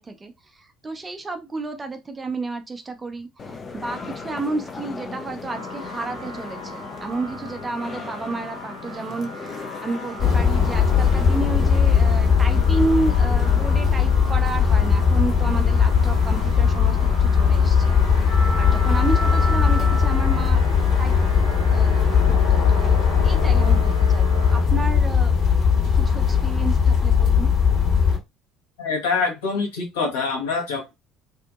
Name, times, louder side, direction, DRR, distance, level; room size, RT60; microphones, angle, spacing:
voice 1, 0.0-18.3 18.6-20.6 21.0-21.1 21.7-22.0 22.3-25.3 25.9-27.5, right 3 dB, 20° right, 0.5 m, -31 dB
sound 1, 3.4-20.5, left 1 dB, 35° left, 0.5 m, -36 dB
sound 2, 5.5-24.6, left 2 dB, 90° right, 0.6 m, -38 dB
sound 3, 10.2-28.2, left 6 dB, 50° left, 1.4 m, -18 dB
voice 2, 28.8-30.9, left 4 dB, 70° left, 1.0 m, -25 dB
2.7 x 2.5 x 2.4 m
figure-of-eight pair, 55°, 0 cm